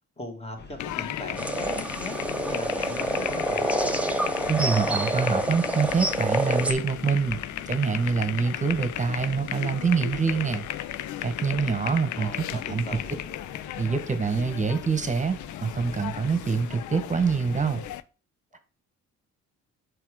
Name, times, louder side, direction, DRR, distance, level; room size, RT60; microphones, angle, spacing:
voice 1, 0.2-2.2 2.5-3.7 12.2-13.2, left 2 dB, 20° left, 4 dB, 1.9 m, -39 dB
sound 1, 0.6-18.0, left 4 dB, 35° left, 1.1 m, -45 dB
sound 2, 0.8-18.0, left 13 dB, 75° left, 0.5 m, -35 dB
sound 3, 1.3-6.7, right 1 dB, 5° right, 0.8 m, -27 dB
voice 2, 4.5-7.4 7.7-10.7 11.2-12.8 13.8-17.8, right 5 dB, 25° right, 10 dB, 1.2 m, -25 dB
5.9 x 5.1 x 4.9 m, 0.35 s
cardioid pair, 90°, 30 cm